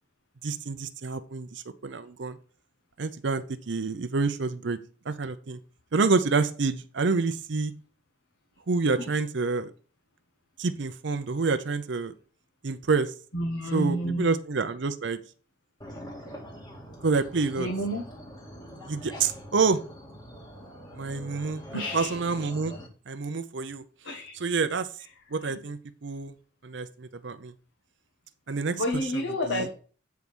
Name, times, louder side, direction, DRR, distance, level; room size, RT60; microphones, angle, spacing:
voice 1, 0.4-2.4 3.0-4.8 5.1-5.6 5.9-7.7 8.7-9.7 10.6-12.1 12.6-13.1 13.7-15.2 17.0-17.7 18.9-19.8 20.9-22.7 23.1-23.8 24.3-24.9 25.3-26.3 26.6-27.5 28.5-29.7, right 4 dB, 65° right, 11 dB, 0.6 m, -28 dB
voice 2, 13.3-14.3 17.6-18.0 21.7-22.1 24.0-24.3 25.4-25.6 28.7-29.7, equal, 70° left, 2 dB, 1.5 m, -29 dB
sound 1, 15.8-22.9, equal, 20° left, 1.9 m, -44 dB
8.5 x 4.7 x 5.3 m, 0.40 s
head